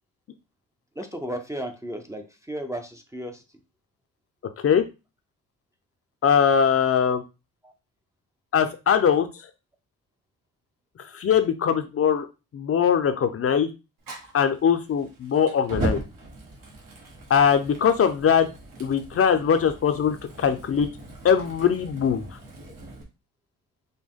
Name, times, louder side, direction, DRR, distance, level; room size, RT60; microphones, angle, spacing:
voice 1, 1.0-3.4 7.6-7.7, equal, 10° right, 5 dB, 0.5 m, -34 dB
voice 2, 6.2-7.2 8.5-9.3 11.1-12.3 12.5-13.7 14.3-16.0 17.3-18.5 18.8-20.9 21.2-22.2, left 7 dB, 45° left, 8 dB, 0.5 m, -21 dB
Fire, 14.0-23.0, right 2 dB, 75° right, 1.5 m, -38 dB
5.3 x 2.1 x 3.6 m, 0.27 s
cardioid pair, 120°, 33 cm